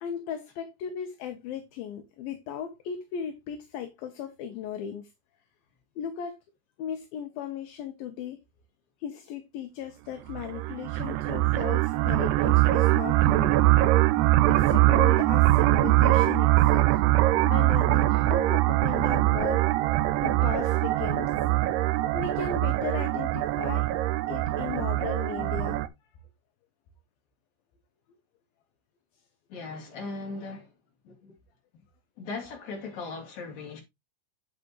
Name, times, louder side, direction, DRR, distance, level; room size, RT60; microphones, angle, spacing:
voice 1, 0.0-5.1 6.0-6.3 6.8-8.4 9.0-13.6 14.5-17.0 17.4-19.6 20.2-21.3 22.1-23.9 24.3-25.8, left 8 dB, 70° left, 2.7 m, -36 dB
sound 1, 10.3-25.9, right 17 dB, 85° right, 2.8 m, -23 dB
voice 2, 29.5-30.7 31.0-31.4 32.2-33.8, left 3 dB, 45° left, 4.2 m, -38 dB
8.7 x 8.3 x 3.1 m
omnidirectional pair, 4.7 m